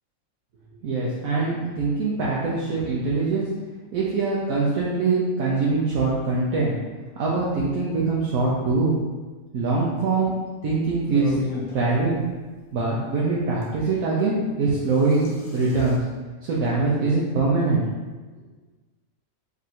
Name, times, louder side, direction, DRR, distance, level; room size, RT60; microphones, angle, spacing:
voice 1, 0.8-3.4 3.9-6.8 7.2-8.9 9.5-10.3 10.6-11.3 11.7-12.2 12.7-16.0 16.4-17.8, right 3 dB, 75° right, -6 dB, 1.1 m, -23 dB
sound 1, 11.1-11.7 13.6-13.7 14.7-16.0, left 2 dB, 90° left, 1.5 m, -34 dB
3.6 x 2.5 x 4.3 m, 1.3 s
omnidirectional pair, 1.5 m